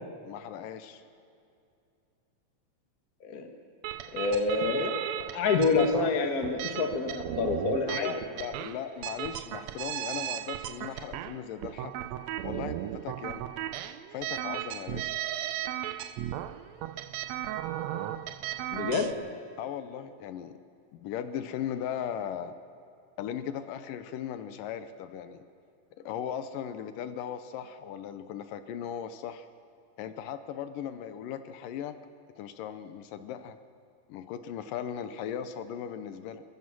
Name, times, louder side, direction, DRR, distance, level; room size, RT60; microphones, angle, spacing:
voice 1, 0.2-1.0 7.9-11.9 12.4-13.4 14.1-15.1 19.6-20.6 20.9-22.6 23.2-25.4 26.1-29.5 30.0-32.0 32.4-33.6 34.1-36.4, left 9 dB, 75° left, 11 dB, 2.4 m, -38 dB
sound 1, 3.8-19.1, right 12 dB, 90° right, 1.5 m, -36 dB
voice 2, 4.1-8.1 18.7-19.1, left 4 dB, 35° left, 5 dB, 1.5 m, -27 dB
24.5 x 19.5 x 6.1 m, 2.6 s
omnidirectional pair, 4.0 m